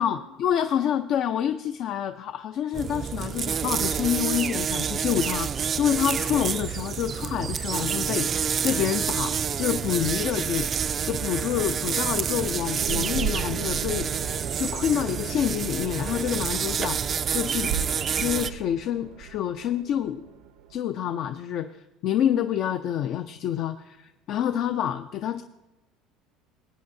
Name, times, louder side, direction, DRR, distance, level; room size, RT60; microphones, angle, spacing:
voice 1, 0.0-10.7 11.1-17.7 18.2-20.2 20.7-25.4, left 10 dB, 55° left, 9 dB, 0.5 m, -28 dB
sound 1, 2.7-18.5, right 7 dB, 35° right, 0.3 m, -28 dB
sound 2, 12.8-20.8, right 8 dB, 80° right, 0.7 m, -37 dB
19.0 x 8.7 x 2.7 m, 1.0 s
supercardioid pair, 115°, 0 cm